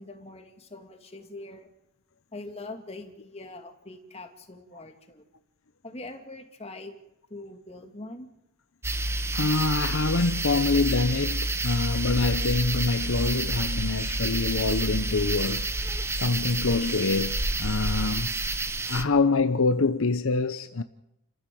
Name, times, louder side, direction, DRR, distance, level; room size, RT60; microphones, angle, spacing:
voice 1, 0.0-1.7 2.3-5.2 5.8-6.9 7.3-8.3, left 2 dB, 25° left, 2.6 m, -42 dB
sound 1, 8.8-19.0, right 2 dB, 10° right, 1.0 m, -29 dB
voice 2, 9.3-15.7 16.1-18.3 18.9-20.8, left 3 dB, 65° left, 0.8 m, -25 dB
29.5 x 14.5 x 7.8 m
head